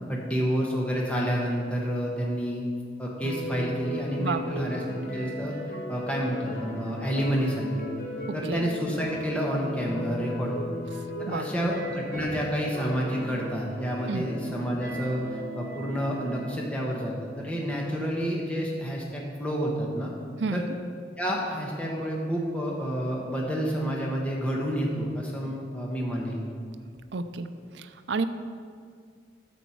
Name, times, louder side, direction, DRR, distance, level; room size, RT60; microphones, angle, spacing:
voice 1, 0.1-2.6 3.0-5.5 5.9-7.6 8.3-10.8 11.2-20.1 20.5-20.6 21.2-26.4, equal, 5° left, -3 dB, 1.1 m, -29 dB
sound 1, 3.2-16.5, left 1 dB, 55° left, 1.3 m, -37 dB
voice 2, 4.2-4.7 8.5-8.6 11.3-11.5 14.1-14.3 20.4-20.6 27.1-27.5 27.7-28.2, right 4 dB, 80° right, 11 dB, 0.5 m, -30 dB
9.6 x 7.1 x 4.6 m, 2.1 s
head